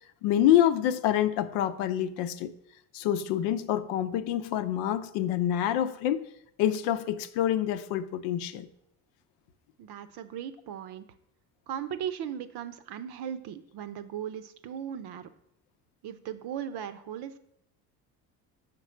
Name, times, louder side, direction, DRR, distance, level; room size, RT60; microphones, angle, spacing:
voice 1, 0.2-2.5 2.9-6.3 6.6-8.7, left 11 dB, 75° left, 11 dB, 0.7 m, -26 dB
voice 2, 9.8-11.0 11.7-15.3 16.0-17.4, right 9 dB, 60° right, 12 dB, 0.7 m, -37 dB
5.9 x 5.3 x 4.4 m, 0.75 s
hypercardioid pair, 70°, 45 cm